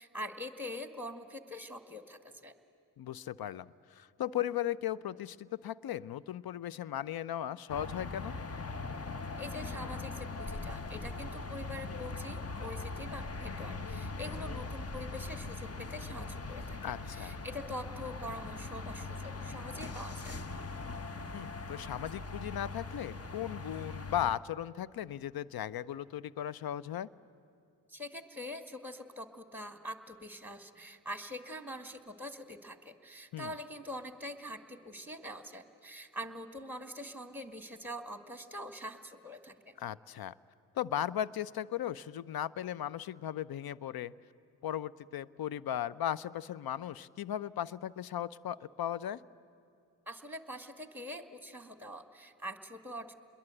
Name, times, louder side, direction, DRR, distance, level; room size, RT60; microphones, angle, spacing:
voice 1, 0.0-2.5 9.4-20.4 27.9-39.7 50.1-53.1, left 1 dB, 5° right, 8 dB, 2.1 m, -44 dB
voice 2, 3.0-8.3 16.8-17.3 21.3-27.1 33.3-33.5 39.8-40.3 40.7-44.1 44.6-49.2, left 11 dB, 50° left, 21 dB, 0.7 m, -37 dB
sound 1, 7.7-24.4, left 3 dB, 30° left, 1.2 m, -41 dB
28.0 x 22.0 x 8.0 m, 2.5 s
hypercardioid pair, 40°, 49 cm